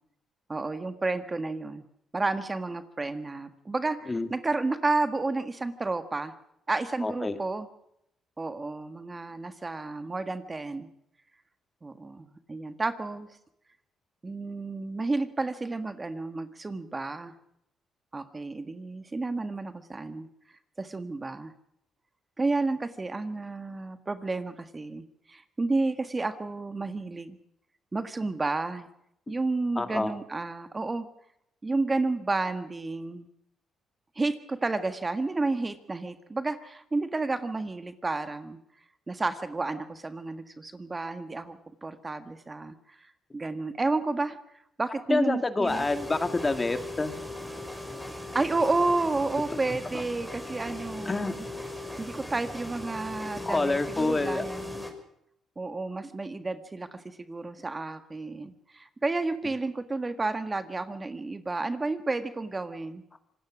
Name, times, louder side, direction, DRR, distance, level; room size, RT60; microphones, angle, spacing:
voice 1, 0.5-1.8 2.1-6.3 6.7-7.7 8.4-10.9 11.8-13.3 14.2-17.3 18.1-20.3 20.8-21.5 22.4-27.4 27.9-28.9 29.3-31.0 31.6-33.3 34.1-38.6 39.1-43.0 43.3-44.4 44.8-45.8 48.3-51.4 52.0-54.8 55.6-63.0, right 3 dB, 25° right, 9 dB, 1.7 m, -31 dB
voice 2, 7.0-7.4 29.8-30.1 45.1-47.1 49.5-49.6 51.0-51.3 53.4-54.5, left 3 dB, 25° left, 8 dB, 2.2 m, -27 dB
sound 1, 45.7-54.9, left 2 dB, ahead, 5.6 m, -38 dB
26.0 x 19.0 x 6.2 m, 0.76 s
cardioid pair, 90°, 0 cm